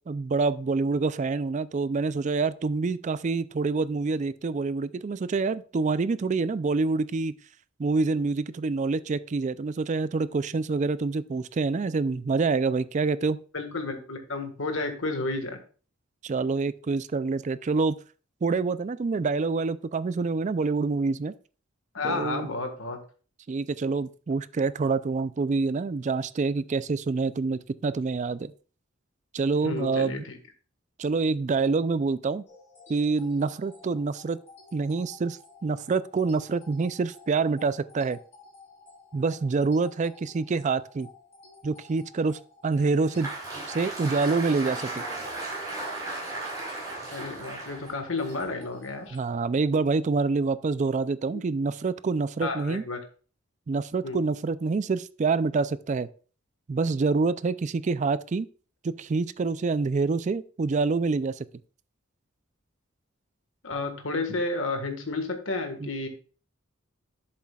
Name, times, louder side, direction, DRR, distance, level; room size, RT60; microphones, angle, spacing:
voice 1, 0.1-7.3 7.8-13.4 16.2-18.0 18.4-21.3 22.0-22.5 23.5-28.5 29.3-30.2 31.0-32.4 32.9-34.4 34.7-38.2 39.1-41.1 41.6-43.3 43.7-45.0 49.1-52.8 53.7-56.1 56.7-58.5 58.8-61.5 65.8-65.9, right 4 dB, 35° right, 0.4 m, -26 dB
voice 2, 13.5-15.6 21.9-23.0 29.6-30.4 47.1-49.2 52.4-53.0 54.0-54.2 63.6-66.1, left 3 dB, 70° left, 1.5 m, -31 dB
sound 1, 32.5-49.5, left 4 dB, 30° left, 3.0 m, -53 dB
Applause, 42.8-49.1, right 2 dB, 20° right, 4.9 m, -36 dB
11.0 x 7.5 x 2.3 m
head